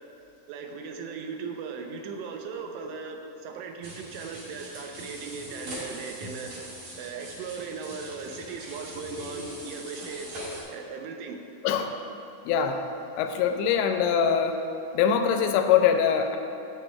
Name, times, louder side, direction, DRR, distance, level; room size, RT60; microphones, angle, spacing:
voice 1, 0.5-6.5 7.0-10.4 10.7-11.4, right 5 dB, 85° right, 3 dB, 2.8 m, -38 dB
sound 1, 3.8-10.6, right 1 dB, 50° right, 2.7 m, -42 dB
voice 2, 12.5-12.8 13.2-14.6 14.9-16.4, left 7 dB, 90° left, 5 dB, 2.8 m, -23 dB
13.5 x 7.6 x 2.3 m, 2.9 s
omnidirectional pair, 5.0 m